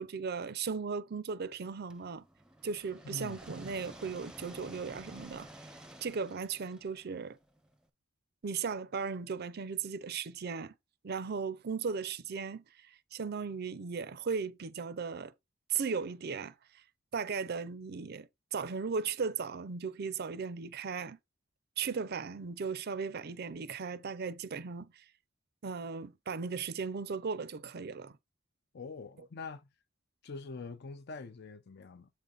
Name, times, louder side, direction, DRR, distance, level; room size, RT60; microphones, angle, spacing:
voice 1, 0.0-2.2 2.6-5.5 6.0-7.4 8.4-10.7 11.0-12.6 13.1-15.3 15.7-16.5 17.1-21.2 21.8-25.0 25.6-28.2, right 5 dB, 50° right, 0.5 m, -37 dB
sound 1, 1.9-7.8, right 1 dB, 5° right, 0.7 m, -52 dB
voice 2, 3.0-3.4 28.7-29.7 30.2-32.1, left 4 dB, 55° left, 0.6 m, -44 dB
7.7 x 4.1 x 3.8 m
head